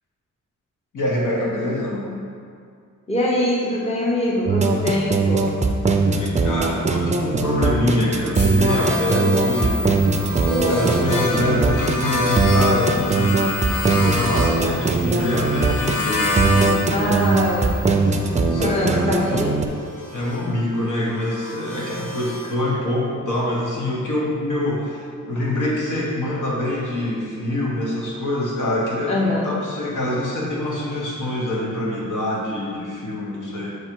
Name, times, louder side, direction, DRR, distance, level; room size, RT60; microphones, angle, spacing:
voice 1, 0.9-2.1 6.1-9.8 10.7-17.3 18.4-19.1 20.1-33.8, left 1 dB, 70° left, -5 dB, 1.5 m, -25 dB
voice 2, 3.1-5.5 10.4-10.8 16.9-17.9 18.3-19.6 29.1-29.6, left 1 dB, 20° left, -4 dB, 0.8 m, -23 dB
sound 1, 4.5-19.7, right 4 dB, 25° right, 0.4 m, -20 dB
sound 2, 8.3-17.9, left 1 dB, 45° left, 1.1 m, -34 dB
sound 3, 8.7-16.8 17.1-22.5, left 2 dB, 90° left, 1.0 m, -28 dB
8.1 x 3.3 x 4.6 m, 2.2 s
wide cardioid pair, 135°, 31 cm